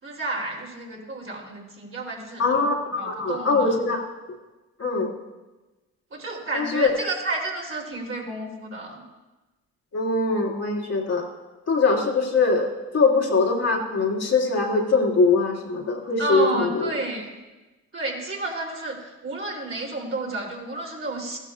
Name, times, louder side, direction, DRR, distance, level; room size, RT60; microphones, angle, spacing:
voice 1, 0.0-2.5 3.0-3.8 6.1-9.0 16.2-17.2 17.9-21.4, right 2 dB, 40° right, -2 dB, 3.4 m, -31 dB
voice 2, 2.4-4.0 4.8-5.1 6.5-6.9 9.9-11.3 11.7-16.9, left 3 dB, 50° left, -2 dB, 2.5 m, -22 dB
15.0 x 12.0 x 2.5 m, 1.1 s
supercardioid pair, 55°, 34 cm